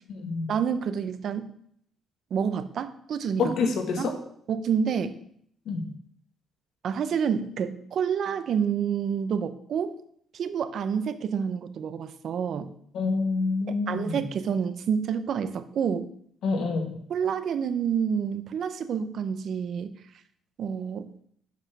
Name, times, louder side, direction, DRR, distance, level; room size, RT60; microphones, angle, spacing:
voice 1, 0.5-1.5 2.3-3.5 4.0-4.1 4.5-5.1 6.8-9.9 10.3-12.7 13.7-16.1 17.1-20.0 20.6-21.1, right 7 dB, 50° right, 12 dB, 0.7 m, -28 dB
voice 2, 3.4-4.1 5.7-5.9 12.9-14.1 16.4-16.9, left 4 dB, 65° left, 4 dB, 1.5 m, -27 dB
7.3 x 5.6 x 5.8 m, 0.66 s
cardioid pair, 150°, 0 cm